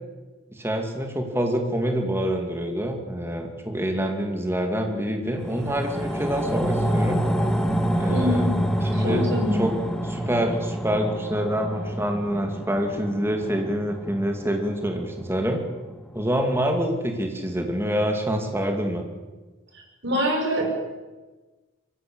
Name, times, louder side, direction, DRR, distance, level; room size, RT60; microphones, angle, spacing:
voice 1, 0.5-7.2 7.9-8.5 8.8-9.3 9.5-9.7 10.0-15.6 16.1-19.1, equal, 10° right, 3 dB, 2.5 m, -26 dB
sound 1, 5.3-15.9 16.3-16.4, equal, 5° left, 1.7 m, -27 dB
voice 2, 8.1-8.5 8.9-9.6 20.0-20.6, equal, 55° right, 0 dB, 6.4 m, -24 dB
24.0 x 15.0 x 8.7 m, 1.2 s
head